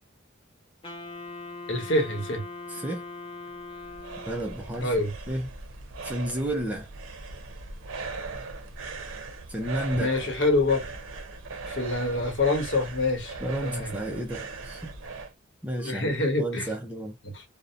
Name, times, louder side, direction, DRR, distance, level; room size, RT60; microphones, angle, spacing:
Wind instrument woodwind instrument, 0.8-4.7, left 3 dB, 25° left, 0.8 m, -41 dB
voice 1, 1.7-2.4 4.8-5.1 9.9-10.8 11.6-13.3 13.6-13.9 15.8-16.7 17.2-17.4, left 2 dB, 60° left, 0.9 m, -26 dB
voice 2, 2.7-3.0 4.3-4.9 5.3-5.5 6.0-6.9 9.5-10.1 13.4-14.9 15.6-17.2, right 1 dB, 5° right, 0.4 m, -32 dB
sound 1, 3.5-15.3, right 3 dB, 80° right, 0.6 m, -39 dB
2.6 x 2.0 x 2.4 m
head